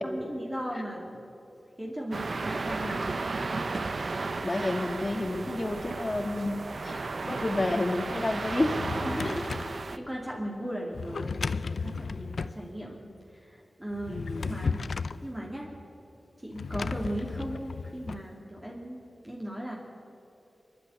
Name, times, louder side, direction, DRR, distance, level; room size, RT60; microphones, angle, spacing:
voice 1, 0.0-1.3 1.8-3.2 9.0-11.4 11.8-14.8 15.2-15.7 16.4-19.7, right 1 dB, 15° right, -3 dB, 2.7 m, -37 dB
sound 1, 2.1-10.0, right 3 dB, 60° right, 1.0 m, -34 dB
voice 2, 4.4-7.0 7.3-8.8 9.2-9.4 14.1-14.6, left 2 dB, 30° left, 7 dB, 1.7 m, -30 dB
Drawer open or close, 8.5-9.8 10.9-12.6 13.9-15.2 16.5-18.2, left 4 dB, 75° left, 0.5 m, -34 dB
25.0 x 11.5 x 9.6 m, 2.9 s
wide cardioid pair, 85°, 0 cm